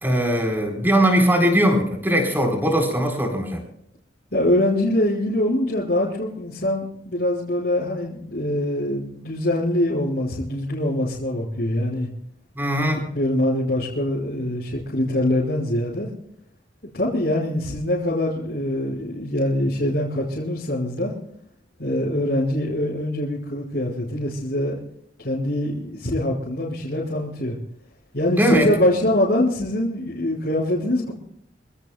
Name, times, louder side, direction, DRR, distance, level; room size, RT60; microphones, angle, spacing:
voice 1, 0.0-3.6 12.6-13.0 28.4-28.7, equal, 10° right, 2 dB, 4.2 m, -20 dB
voice 2, 4.3-12.1 13.1-16.1 16.9-21.1 21.8-24.8 25.2-27.5 28.1-31.1, left 1 dB, 60° left, -8 dB, 5.3 m, -23 dB
28.0 x 17.0 x 2.3 m, 0.72 s
head